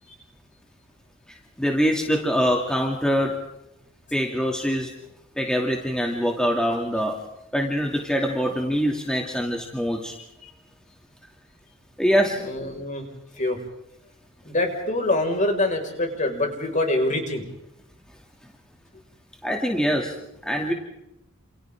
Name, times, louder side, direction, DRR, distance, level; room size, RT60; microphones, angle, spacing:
voice 1, 1.3-3.4 4.1-4.9 5.4-7.2 7.5-10.2 12.0-12.4 19.4-20.2 20.4-20.7, equal, 5° left, 0 dB, 2.7 m, -24 dB
voice 2, 12.4-13.0 13.4-13.6 14.4-17.4, left 2 dB, 35° left, 3 dB, 5.5 m, -25 dB
30.0 x 28.5 x 3.8 m, 0.86 s
head